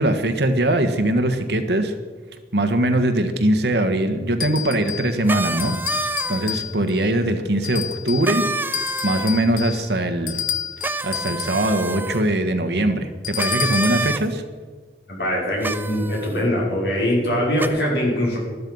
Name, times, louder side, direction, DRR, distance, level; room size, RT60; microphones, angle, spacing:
voice 1, 0.0-1.9 2.5-10.4 11.0-14.4, right 1 dB, 70° right, 7 dB, 1.4 m, -21 dB
sound 1, 4.4-5.2 5.6-7.0 7.6-8.3 8.7-11.7 13.2-14.1, left 9 dB, 50° left, 0.8 m, -30 dB
sound 2, 5.3-6.6 8.2-9.4 10.8-12.2 13.4-14.2 15.6-16.3 17.6-17.7, right 2 dB, 10° right, 0.4 m, -27 dB
voice 2, 15.1-18.4, equal, 65° left, -3 dB, 5.6 m, -22 dB
12.5 x 12.5 x 5.5 m, 1.4 s
head